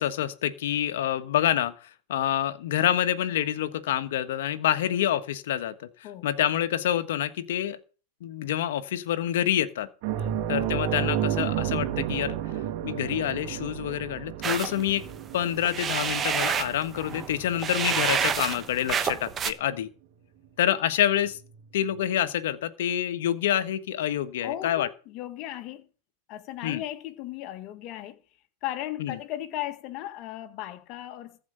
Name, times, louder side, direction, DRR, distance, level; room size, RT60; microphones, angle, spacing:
voice 1, 0.0-7.8 8.2-9.9 10.5-12.4 12.8-15.1 15.3-19.9 20.6-21.4 21.7-24.9 26.6-26.8 29.0-29.2, left 11 dB, 70° left, 1.3 m, -27 dB
sound 1, 10.0-19.0 19.3-19.5 21.5-21.6, right 11 dB, 55° right, 2.0 m, -32 dB
sound 2, 14.4-19.5, right 7 dB, 25° right, 1.3 m, -29 dB
voice 2, 24.4-25.9 26.3-28.2 28.6-31.4, left 13 dB, 45° left, 1.7 m, -36 dB
14.5 x 5.0 x 9.0 m
hypercardioid pair, 120°, 0 cm